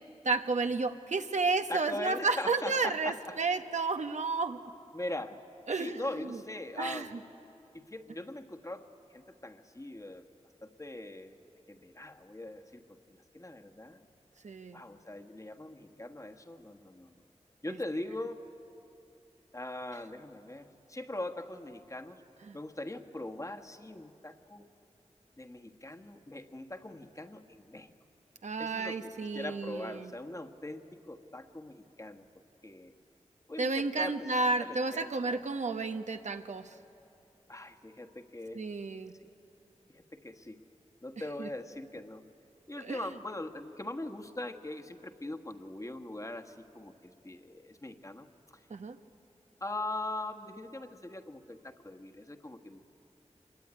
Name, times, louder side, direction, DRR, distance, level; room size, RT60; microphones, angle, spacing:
voice 1, 0.2-4.6 5.7-6.4 6.8-7.1 14.4-14.8 22.5-22.6 28.4-30.1 33.6-36.7 38.5-39.1 41.4-41.5 42.8-43.0 48.7-49.0, right 3 dB, 80° right, 7 dB, 1.1 m, -32 dB
voice 2, 1.7-3.4 4.9-5.4 5.8-7.2 7.7-10.2 10.6-11.4 11.7-12.8 13.1-14.1 14.7-17.2 17.6-18.4 19.5-22.2 22.5-24.7 25.4-27.9 28.6-32.2 32.6-32.9 33.5-35.4 37.5-38.7 39.9-40.6 41.0-42.2 42.7-48.6 49.6-52.9, left 1 dB, 25° left, 4 dB, 1.4 m, -41 dB
26.0 x 22.0 x 9.7 m, 2.8 s
wide cardioid pair, 70°, 12 cm